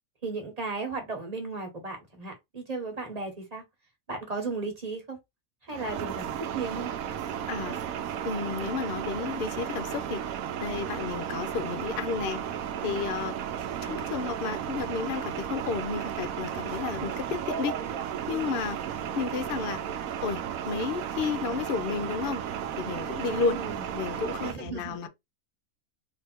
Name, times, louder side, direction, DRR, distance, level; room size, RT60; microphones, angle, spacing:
voice 1, 0.2-3.6 4.1-5.2 5.7-6.9 23.2-23.8 24.4-25.1, right 3 dB, 30° right, 1.3 m, -35 dB
sound 1, 5.7-24.5, right 9 dB, 75° right, 1.0 m, -34 dB
voice 2, 7.5-7.8 8.2-10.2 10.6-12.4 12.8-13.4 13.8-17.8 18.3-18.8 19.2-19.8 20.2-22.4 22.8-23.6 23.9-25.1, left 5 dB, 55° left, 0.6 m, -32 dB
3.3 x 2.8 x 4.4 m
omnidirectional pair, 1.5 m